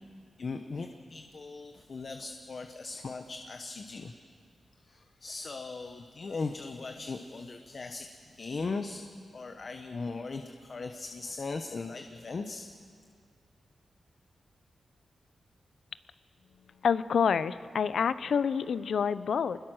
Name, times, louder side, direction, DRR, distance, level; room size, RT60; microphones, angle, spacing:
voice 1, 0.4-4.1 4.8-9.0 9.3-12.7, left 4 dB, 55° left, 6 dB, 1.1 m, -38 dB
voice 2, 16.8-19.6, left 6 dB, 80° left, 15 dB, 0.6 m, -27 dB
24.5 x 21.0 x 6.4 m, 2.1 s
cardioid pair, 50°, 0 cm